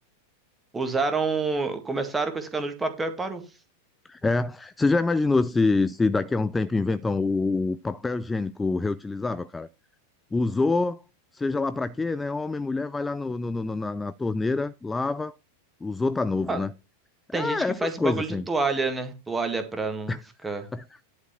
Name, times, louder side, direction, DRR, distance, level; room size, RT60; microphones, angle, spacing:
voice 1, 0.7-3.4 16.5-16.6 17.3-20.1 20.4-20.6, right 3 dB, 10° right, 1.8 m, -28 dB
voice 2, 4.1-9.7 10.3-11.0 11.3-15.3 15.8-16.7 17.3-18.4 20.1-20.2 20.7-21.0, left 3 dB, 10° left, 0.4 m, -26 dB
11.0 x 4.9 x 5.7 m
figure-of-eight pair, 90°, 0 cm